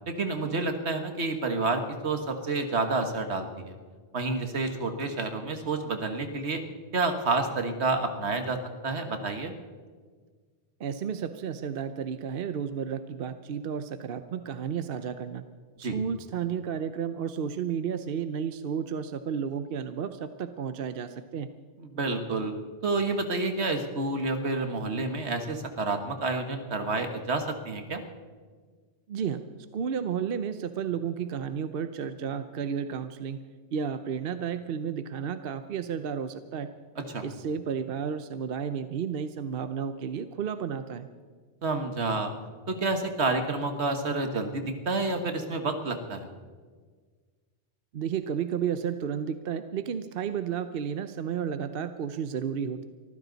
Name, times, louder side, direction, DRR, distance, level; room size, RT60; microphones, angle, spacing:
voice 1, 0.1-3.8 4.1-6.6 6.9-8.6 8.8-9.5 15.8-16.0 21.8-22.5 22.8-28.0 37.1-37.2 41.6-42.3 42.7-46.3, right 3 dB, 80° right, 6 dB, 1.8 m, -29 dB
voice 2, 10.8-15.4 15.9-21.5 29.1-29.4 29.7-33.4 33.7-36.7 37.2-41.1 47.9-52.8, right 7 dB, 60° right, 10 dB, 0.8 m, -32 dB
24.5 x 15.0 x 4.0 m, 1.5 s
omnidirectional pair, 1.1 m